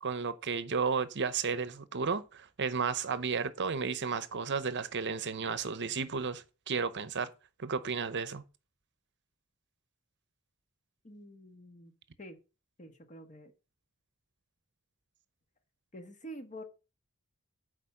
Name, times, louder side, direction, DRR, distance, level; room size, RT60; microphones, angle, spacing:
voice 1, 0.0-7.3 7.6-8.4, right 5 dB, 55° right, 0.8 m, -33 dB
voice 2, 11.0-11.9 12.2-12.4 12.8-13.5 15.9-16.6, equal, 35° left, 1.4 m, -47 dB
8.2 x 5.0 x 7.5 m
head